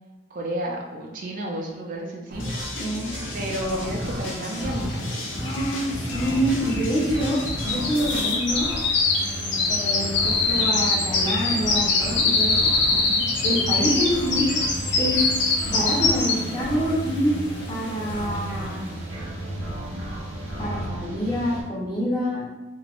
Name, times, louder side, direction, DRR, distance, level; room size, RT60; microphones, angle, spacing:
voice 1, 0.3-5.3 12.9-13.2, right 1 dB, 45° right, -1 dB, 0.3 m, -32 dB
sound 1, 2.3-21.6, right 1 dB, 85° right, 0.8 m, -34 dB
sound 2, 2.4-8.3, left 1 dB, 85° left, 0.9 m, -32 dB
sound 3, 4.9-5.0 5.2-16.7 17.1-17.4 17.8-17.9, left 3 dB, 65° left, 0.5 m, -24 dB
voice 2, 5.4-7.4 7.6-8.7 9.7-12.7 13.4-14.5 15.0-15.3 15.6-17.3 17.7-19.0 20.6-22.5, equal, 20° left, -6 dB, 0.7 m, -26 dB
3.1 x 2.2 x 2.4 m, 1.1 s
head